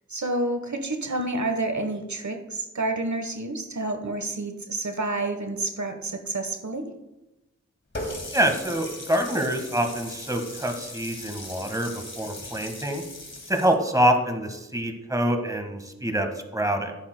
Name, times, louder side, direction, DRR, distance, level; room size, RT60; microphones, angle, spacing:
voice 1, 0.1-6.9, right 2 dB, 70° right, 6 dB, 1.2 m, -29 dB
Water tap faucet, 7.9-13.7, left 1 dB, 40° left, 2.1 m, -38 dB
voice 2, 8.3-13.0 13.5-16.9, right 1 dB, 10° right, 5 dB, 1.5 m, -25 dB
16.0 x 8.5 x 2.2 m, 0.96 s
wide cardioid pair, 50°, 30 cm